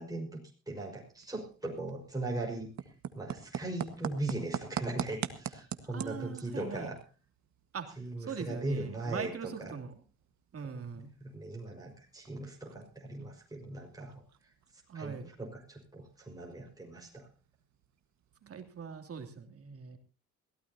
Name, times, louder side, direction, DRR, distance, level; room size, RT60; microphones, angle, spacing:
voice 1, 0.0-7.0 8.0-9.7 11.0-14.5 14.9-17.3, right 2 dB, 10° right, -1 dB, 5.2 m, -39 dB
sound 1, 0.8-19.0, right 9 dB, 65° right, 1.6 m, -46 dB
voice 2, 5.9-6.9 7.7-9.9 10.5-11.1 14.9-15.3 18.5-20.0, right 6 dB, 50° right, 5 dB, 3.0 m, -41 dB
22.0 x 16.0 x 2.8 m, 0.34 s
cardioid pair, 90°, 30 cm